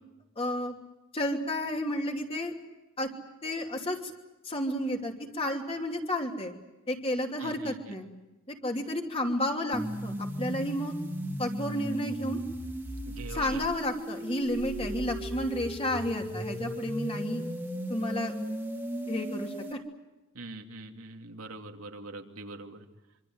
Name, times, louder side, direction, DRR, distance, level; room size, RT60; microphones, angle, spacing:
voice 1, 0.4-0.7 1.1-2.5 3.0-3.1 3.4-4.1 4.4-6.5 6.9-8.1 8.5-10.9 11.4-12.4 13.3-17.4 17.9-18.3 19.1-19.8, left 1 dB, 25° left, 3 dB, 2.9 m, -31 dB
voice 2, 7.4-8.0 13.0-13.6 20.3-22.8, right 2 dB, 85° right, 4 dB, 2.7 m, -43 dB
sound 1, 9.7-19.7, equal, 10° right, 2.1 m, -36 dB
26.0 x 25.0 x 8.0 m, 1.1 s
head